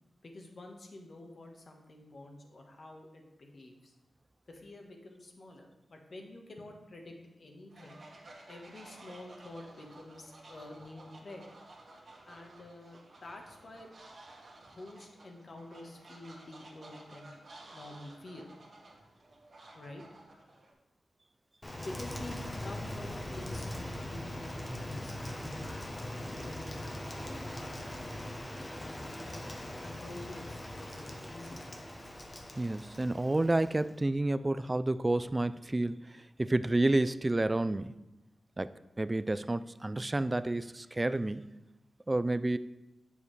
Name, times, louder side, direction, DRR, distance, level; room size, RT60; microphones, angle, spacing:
voice 1, 0.2-3.9 4.5-8.0 8.5-11.4 12.2-13.9 14.7-17.4 17.7-18.5 19.7-20.0 21.8-28.0 28.5-29.1 29.8-31.7, left 2 dB, 55° left, 2 dB, 1.4 m, -48 dB
Fowl, 7.7-20.7, right 2 dB, 60° right, 1.8 m, -54 dB
Rain, 21.6-34.0, left 1 dB, 25° left, 1.0 m, -41 dB
voice 2, 32.6-37.9 38.6-38.7 39.0-41.5 42.1-42.6, right 2 dB, 25° right, 14 dB, 0.3 m, -30 dB
8.0 x 7.1 x 3.3 m, 0.97 s
cardioid pair, 60°, 0 cm